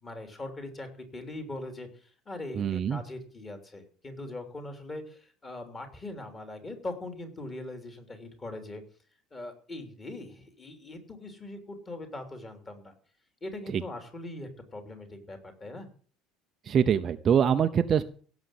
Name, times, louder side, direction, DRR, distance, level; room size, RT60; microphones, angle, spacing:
voice 1, 0.0-8.8 9.3-12.9 13.4-15.9, left 2 dB, 20° left, 6 dB, 3.0 m, -41 dB
voice 2, 2.5-3.0 13.7-13.8 16.6-18.0, right 8 dB, 25° right, 8 dB, 0.6 m, -24 dB
17.0 x 7.3 x 7.7 m, 0.43 s
cardioid pair, 170°, 0 cm